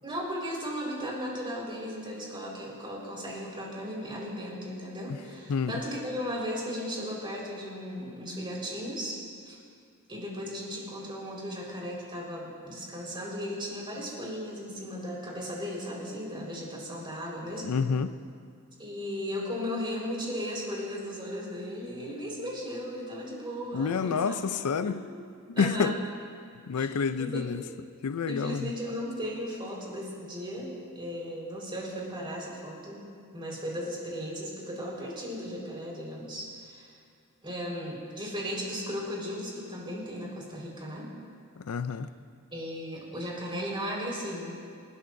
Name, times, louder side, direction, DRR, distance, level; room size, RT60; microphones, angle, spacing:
voice 1, 0.0-9.2 9.4-9.6 10.1-17.8 18.8-24.4 24.8-25.0 25.6-26.0 26.7-27.5 28.3-33.1 33.3-36.9 37.4-41.1 42.5-44.6, equal, 25° right, -4 dB, 4.4 m, -36 dB
voice 2, 5.5-5.8 17.6-18.1 23.7-25.0 25.6-25.9 26.7-27.6 28.0-28.7 41.7-42.1, left 5 dB, 90° left, 12 dB, 0.5 m, -28 dB
27.5 x 13.0 x 2.6 m, 2.2 s
head